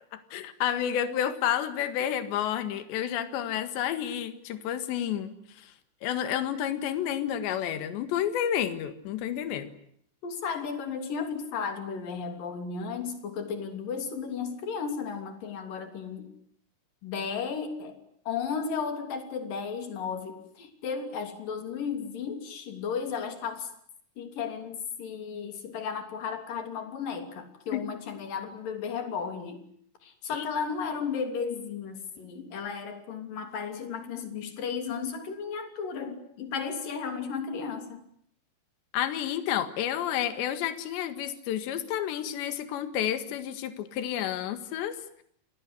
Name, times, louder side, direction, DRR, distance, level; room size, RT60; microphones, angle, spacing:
voice 1, 0.1-5.7 6.0-9.7 27.7-27.8 30.3-30.5 38.9-45.0, left 10 dB, 70° left, 10 dB, 3.9 m, -30 dB
voice 2, 10.2-16.3 17.0-18.0 18.3-23.7 24.2-29.6 30.0-38.0, left 6 dB, 50° left, 6 dB, 4.5 m, -34 dB
28.0 x 20.5 x 9.6 m, 0.67 s
omnidirectional pair, 5.5 m